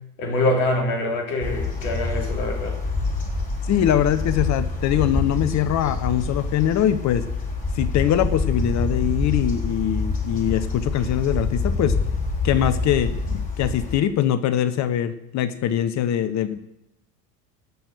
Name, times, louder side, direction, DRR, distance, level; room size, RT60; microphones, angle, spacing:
voice 1, 0.2-2.8, left 1 dB, 60° left, 1 dB, 3.3 m, -24 dB
sound 1, 1.4-14.0, left 3 dB, 15° left, 4.5 m, -26 dB
voice 2, 3.7-7.3 7.8-12.0 12.4-16.6, left 10 dB, 35° left, 12 dB, 0.8 m, -22 dB
17.5 x 6.3 x 6.6 m, 0.88 s
figure-of-eight pair, 75°, 49 cm